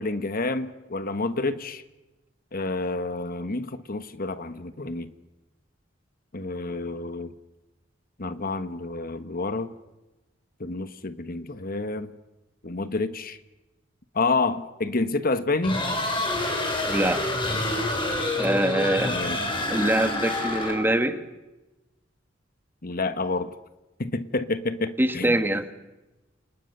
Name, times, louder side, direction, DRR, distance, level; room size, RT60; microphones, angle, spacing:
voice 1, 0.0-1.8 2.5-5.1 6.3-7.3 8.2-9.7 10.6-12.1 12.6-13.4 14.1-15.8 18.7-19.4 22.8-23.5 24.0-25.4, left 3 dB, 50° left, 1.3 m, -29 dB
sound 1, 15.6-21.0, left 1 dB, 25° left, 5.5 m, -28 dB
voice 2, 16.9-17.2 18.4-19.2 19.7-21.2 25.0-25.6, right 1 dB, 10° right, 1.7 m, -23 dB
29.5 x 28.0 x 6.8 m
head